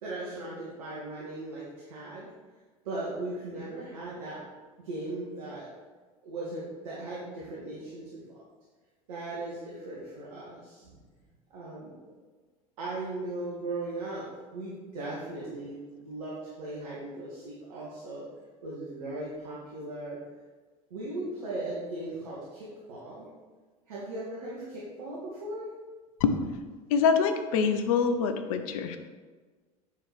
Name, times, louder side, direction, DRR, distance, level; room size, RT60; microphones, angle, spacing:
voice 1, 0.0-2.3 2.8-4.4 4.8-5.7 6.2-8.2 9.1-11.0 11.5-11.9 12.8-18.2 18.6-20.2 20.9-23.3 23.9-25.7, right 2 dB, 75° right, -7 dB, 2.3 m, -38 dB
voice 2, 26.9-29.0, left 6 dB, 65° left, 8 dB, 1.0 m, -25 dB
9.6 x 4.8 x 6.2 m, 1.4 s
hypercardioid pair, 75°, 19 cm